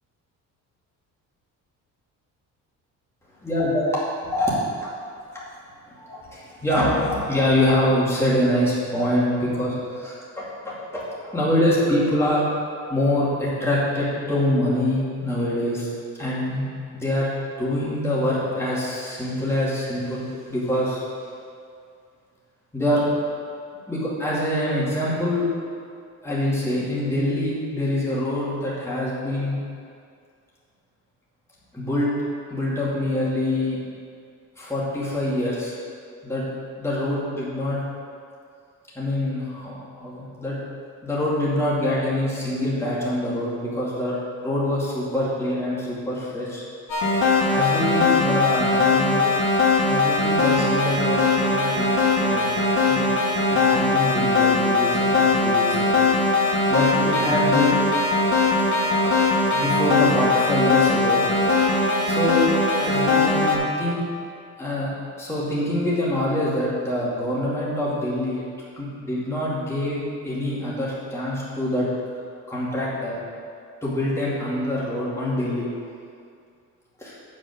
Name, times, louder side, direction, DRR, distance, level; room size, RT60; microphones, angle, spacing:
voice 1, 3.4-3.8 4.3-4.5 6.0-11.0 11.3-12.4 12.9-15.9 16.2-16.7 16.9-17.3 17.6-21.0 22.7-23.0 23.9-25.5 26.2-29.6 31.7-32.1 32.5-33.8 34.6-35.7 36.2-36.4 36.8-37.8 38.9-40.6 41.0-46.6 47.5-49.2 49.9-51.9 52.2-52.5 52.8-53.1 53.5-56.0 56.7-57.8 59.5-61.2 62.0-62.5 62.8-64.0 64.6-64.9 65.2-68.4 68.8-71.9 72.5-73.2 73.8-75.7 77.0-77.2, left 1 dB, 10° left, -8 dB, 2.4 m, -25 dB
sound 1, 46.9-63.6, left 3 dB, 85° left, 2.1 m, -20 dB
8.7 x 5.3 x 6.7 m, 2.3 s
cardioid pair, 150°, 32 cm